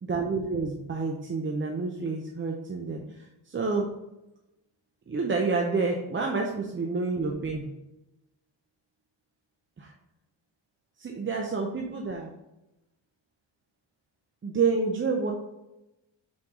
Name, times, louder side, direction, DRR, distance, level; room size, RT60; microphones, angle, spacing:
voice 1, 0.0-3.9 5.1-7.7 9.8-9.9 11.0-12.3 14.4-15.3, right 4 dB, 25° right, 1 dB, 0.6 m, -29 dB
6.3 x 4.5 x 3.6 m, 0.93 s
wide cardioid pair, 145°, 48 cm